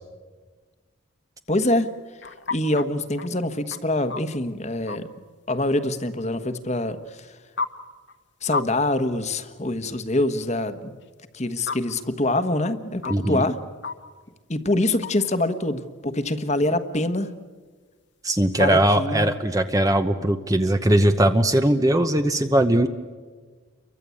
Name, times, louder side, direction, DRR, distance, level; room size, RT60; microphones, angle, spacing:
voice 1, 1.5-1.9 2.5-5.1 5.5-7.3 8.4-11.0 11.3-13.6 14.5-17.3 18.6-19.3, left 1 dB, 35° left, 11 dB, 1.3 m, -25 dB
sound 1, 1.8-2.8 3.2-3.3 3.7-4.4 4.9-5.0 7.0-7.1 7.6-7.7 8.1-8.2 8.5-8.7 9.0-9.1 11.0-11.1 11.7-11.8 12.3-12.4 12.6-12.7 13.0-13.1 13.8-13.9 15.0-15.1 15.5-15.6, left 4 dB, 60° left, 1.5 m, -30 dB
voice 2, 13.1-13.5 18.2-22.9, right 1 dB, 15° right, 7 dB, 0.9 m, -20 dB
29.5 x 23.5 x 8.6 m, 1.5 s
head